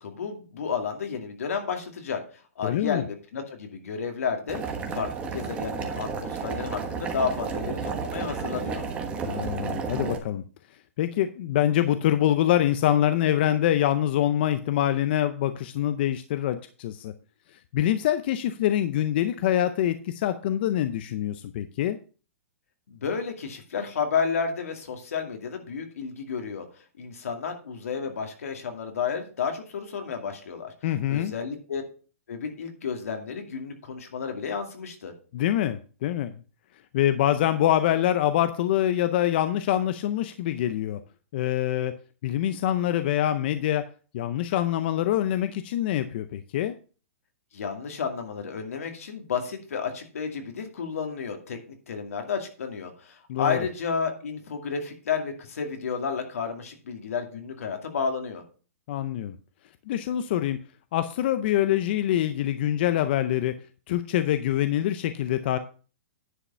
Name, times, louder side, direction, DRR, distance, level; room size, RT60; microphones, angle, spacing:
voice 1, 0.0-4.6 4.9-8.8 22.9-31.8 32.3-35.1 47.5-58.4, left 6 dB, 80° left, 4 dB, 2.5 m, -32 dB
voice 2, 2.6-3.0 9.2-10.4 11.0-17.1 17.7-22.0 30.8-31.3 35.3-36.3 36.9-41.0 41.3-41.9 42.2-43.8 44.1-46.8 53.3-53.6 58.9-59.4 59.9-60.6 60.9-63.5 63.9-65.6, left 12 dB, 45° left, 10 dB, 0.6 m, -25 dB
Boiling, 4.5-10.2, right 5 dB, 15° right, 1.2 m, -32 dB
10.0 x 5.0 x 5.6 m, 0.38 s
hypercardioid pair, 160°, 8 cm